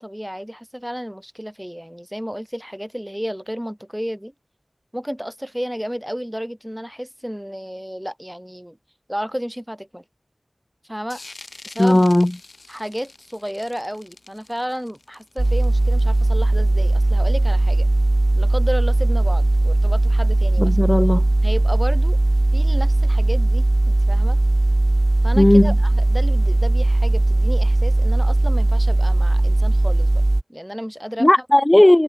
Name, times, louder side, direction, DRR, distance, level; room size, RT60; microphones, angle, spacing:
voice 1, 0.0-4.3 4.9-8.8 9.1-10.0 10.9-11.2 11.6-12.0 12.7-17.9 18.4-20.8 21.4-22.2 22.5-24.4 25.2-30.2 30.5-31.3, equal, 5° right, 7.7 m, -32 dB
sound 1, 11.1-16.4, left 2 dB, 60° left, 6.8 m, -45 dB
voice 2, 11.8-12.3 20.6-21.2 25.4-25.7 31.2-32.0, left 1 dB, 25° left, 0.9 m, -15 dB
sound 2, 15.4-30.4, right 2 dB, 40° right, 2.6 m, -18 dB
wide cardioid pair, 55°, 0 cm